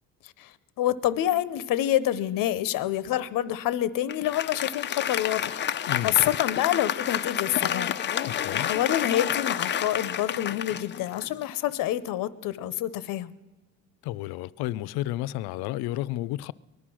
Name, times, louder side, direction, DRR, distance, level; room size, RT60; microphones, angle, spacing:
voice 1, 0.2-13.3, left 12 dB, 60° left, 0.9 m, -28 dB
Applause, 4.1-11.7, left 9 dB, 30° left, 0.5 m, -29 dB
voice 2, 5.9-6.2 8.3-8.7 14.0-16.5, left 15 dB, 90° left, 0.5 m, -31 dB
19.5 x 11.5 x 6.2 m
cardioid pair, 150°, 37 cm